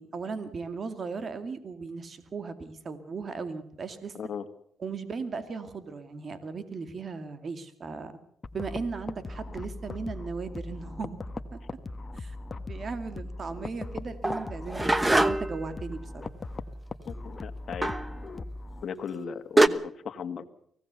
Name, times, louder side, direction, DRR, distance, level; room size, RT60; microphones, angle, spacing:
voice 1, 0.0-4.1 4.8-8.1 8.5-11.2 11.5-11.6 12.1-16.3, right 4 dB, 45° right, 10 dB, 2.2 m, -37 dB
voice 2, 4.1-4.5 17.1-17.9 18.8-20.5, left 7 dB, 55° left, 8 dB, 1.9 m, -37 dB
sound 1, 8.4-18.8, left 2 dB, 30° left, 1.3 m, -39 dB
sound 2, 14.2-15.6 17.8-18.1 19.1-19.2 19.6-19.7, right 2 dB, 15° right, 1.1 m, -23 dB
24.5 x 17.0 x 6.9 m, 0.67 s
cardioid pair, 90°, 0 cm